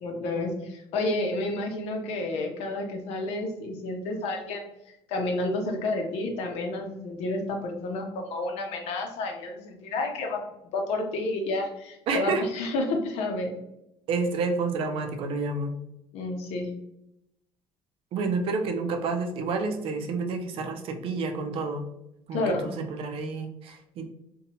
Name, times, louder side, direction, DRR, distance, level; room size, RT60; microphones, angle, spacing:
voice 1, 0.0-4.7 5.1-10.4 10.7-13.5 16.1-16.7 22.3-22.7, left 2 dB, 75° left, 3 dB, 0.6 m, -30 dB
voice 2, 12.1-12.4 14.1-15.7 18.1-21.8 22.3-24.1, right 4 dB, 60° right, 5 dB, 0.4 m, -29 dB
2.7 x 2.2 x 2.8 m, 0.84 s
cardioid pair, 120°, 11 cm